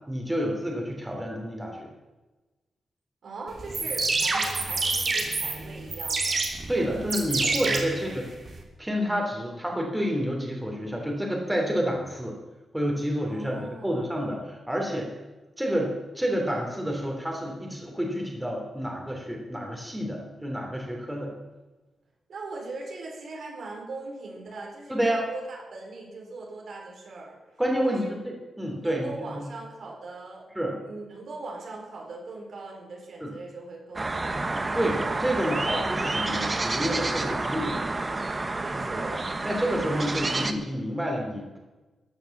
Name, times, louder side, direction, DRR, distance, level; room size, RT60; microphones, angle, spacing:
voice 1, 0.1-1.9 6.7-8.3 8.8-12.4 12.7-15.1 15.6-21.3 24.9-25.2 27.6-29.4 30.5-30.8 33.2-33.3 34.7-37.8 38.9-39.0 39.4-41.6, equal, 5° right, 0 dB, 3.2 m, -29 dB
voice 2, 3.2-6.5 13.3-14.1 22.3-27.4 27.9-28.1 28.8-34.4 38.6-39.3, right 3 dB, 65° right, -1 dB, 4.4 m, -40 dB
sound 1, 3.6-8.6, right 3 dB, 45° right, 2.9 m, -28 dB
sound 2, 34.0-40.5, right 2 dB, 25° right, 1.2 m, -29 dB
14.0 x 9.0 x 7.3 m, 1.2 s
cardioid pair, 100°, 0 cm